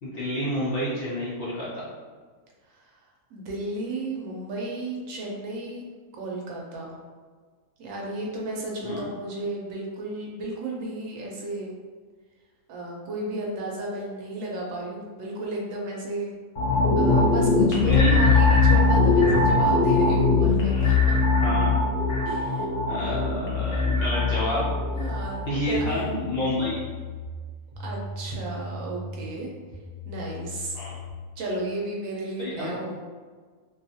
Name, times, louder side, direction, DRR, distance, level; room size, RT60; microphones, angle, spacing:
voice 1, 0.0-1.8 8.8-9.1 17.8-18.1 21.4-21.7 22.9-24.7 25.5-26.8 30.7-31.0 32.4-32.7, left 1 dB, 80° left, -7 dB, 0.5 m, -29 dB
voice 2, 3.3-5.8 6.1-7.0 7.8-11.7 12.7-16.3 17.0-21.1 22.2-22.7 23.0-23.2 25.0-26.1 27.8-29.5 30.1-30.8 31.4-33.0, right 2 dB, 65° right, -2 dB, 0.9 m, -33 dB
sound 1, 16.6-25.9 26.2-26.4, left 3 dB, 65° left, 0.9 m, -21 dB
sound 2, 23.7-31.2, left 1 dB, 45° right, 0.4 m, -36 dB
2.6 x 2.3 x 2.6 m, 1.5 s
omnidirectional pair, 1.6 m